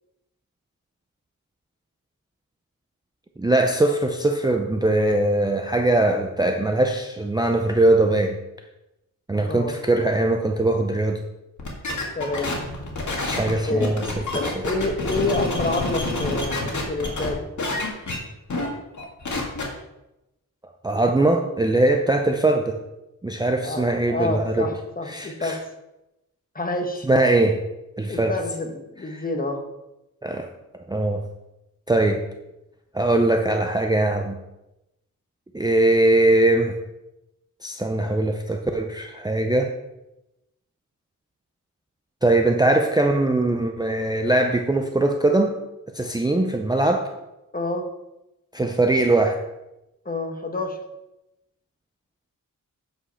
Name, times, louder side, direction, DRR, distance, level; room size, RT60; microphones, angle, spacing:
voice 1, 3.4-8.4 9.3-11.2 13.2-14.0 20.8-22.8 23.2-24.7 25.1-25.6 27.1-27.6 28.0-28.4 29.1-29.2 30.2-30.5 30.9-31.2 31.9-32.3 32.9-34.4 35.5-36.8 37.6-39.8 42.2-45.6 45.9-47.1 48.5-49.4, right 2 dB, 10° right, 4 dB, 0.5 m, -21 dB
voice 2, 9.5-9.8 12.2-12.5 13.6-13.9 14.3-17.4 23.6-25.6 26.5-27.1 28.1-29.6 47.5-47.9 50.0-50.8, left 2 dB, 25° left, 4 dB, 1.1 m, -28 dB
sound 1, 11.6-17.3 17.6-18.2 18.5-18.7 19.0-19.6, left 2 dB, 55° left, 2.0 m, -27 dB
8.6 x 5.2 x 5.6 m, 0.94 s
wide cardioid pair, 150°, 34 cm